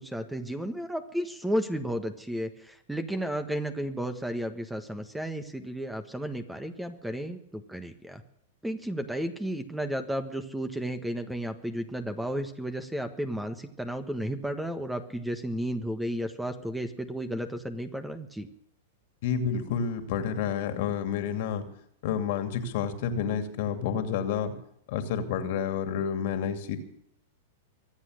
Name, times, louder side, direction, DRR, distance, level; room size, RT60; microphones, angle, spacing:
voice 1, 0.0-8.2 8.6-18.5, equal, 5° right, 9 dB, 1.4 m, -33 dB
voice 2, 19.2-21.7 22.0-24.5 24.9-26.8, left 7 dB, 60° left, 7 dB, 2.6 m, -29 dB
24.0 x 8.4 x 6.6 m, 0.72 s
hypercardioid pair, 115°, 0 cm